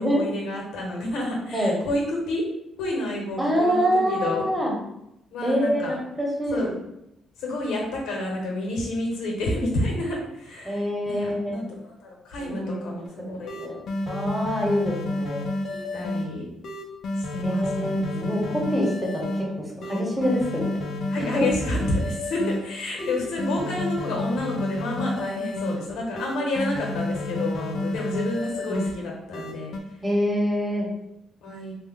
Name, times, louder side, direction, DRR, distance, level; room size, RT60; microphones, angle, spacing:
voice 1, 0.0-2.4 2.8-4.4 5.3-6.0 6.5-6.7 7.4-13.6 14.7-14.9 15.7-16.4 17.1-18.5 21.1-29.7 31.4-31.7, left 1 dB, 85° left, -1 dB, 0.9 m, -30 dB
voice 2, 3.4-4.7 5.4-6.7 10.6-11.6 12.4-12.9 13.6-13.8 14.1-15.4 17.4-20.7 21.2-21.4 23.0-23.1 28.7-28.8 30.0-30.9, equal, 15° right, -2 dB, 1.0 m, -25 dB
sound 1, 13.0-13.1 13.5-16.2 16.6-19.4 19.8-22.6 23.0-25.8 26.2-28.9 29.3-29.8, left 2 dB, 65° left, 0.5 m, -30 dB
3.1 x 2.2 x 3.5 m, 0.82 s
cardioid pair, 90°, 0 cm